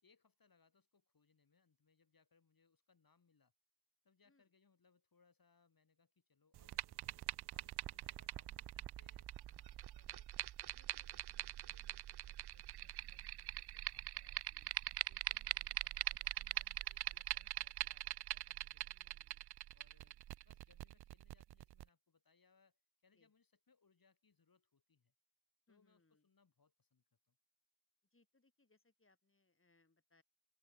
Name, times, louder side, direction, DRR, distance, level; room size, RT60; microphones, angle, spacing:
voice 1, 0.0-3.5 4.0-7.2 7.5-10.3 10.7-14.8 15.1-19.2 19.7-25.1 25.7-27.4, left 5 dB, 60° left, 5.8 m, -75 dB
sound 1, 6.5-21.8, right 13 dB, 85° right, 0.5 m, -43 dB
voice 2, 18.9-19.4 23.1-23.3 25.7-26.3 28.1-30.2, left 3 dB, 35° left, 6.6 m, -76 dB
open air
cardioid pair, 55°, 38 cm